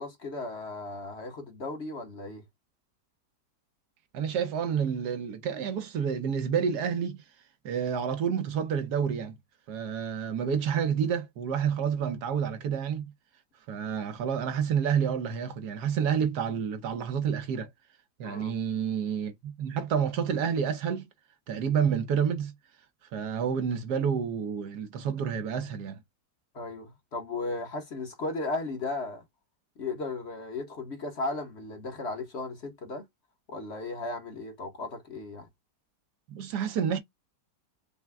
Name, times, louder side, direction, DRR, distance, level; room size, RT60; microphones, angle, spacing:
voice 1, 0.0-2.4 18.2-18.5 26.5-29.2 29.8-33.0 33.5-35.5, left 2 dB, 45° left, 1.2 m, -36 dB
voice 2, 4.1-7.2 7.6-9.4 9.7-13.1 13.7-17.7 18.2-21.1 21.5-22.5 23.1-26.0 36.3-37.0, right 7 dB, 75° right, 1.3 m, -29 dB
5.7 x 2.2 x 3.5 m
omnidirectional pair, 1.8 m